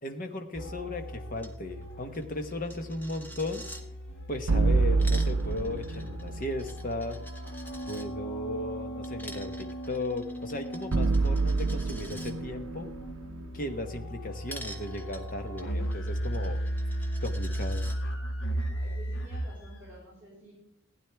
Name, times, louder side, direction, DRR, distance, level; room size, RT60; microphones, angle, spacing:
voice 1, 0.0-3.6 4.3-7.2 7.9-12.9 13.5-16.6 17.2-17.9, left 1 dB, 40° left, 6 dB, 1.1 m, -36 dB
sound 1, 0.5-20.0, equal, 60° left, 1.8 m, -36 dB
Coin (dropping), 1.4-1.5 1.8-1.9 2.1-3.8 4.8-8.1 9.0-12.3 14.5-18.0, equal, 10° left, 1.0 m, -47 dB
sound 2, 4.5-6.7 10.9-14.1, right 3 dB, 70° right, 0.5 m, -27 dB
voice 2, 18.7-20.5, right 1 dB, 10° right, -8 dB, 5.3 m, -51 dB
16.0 x 9.5 x 3.4 m, 0.76 s
head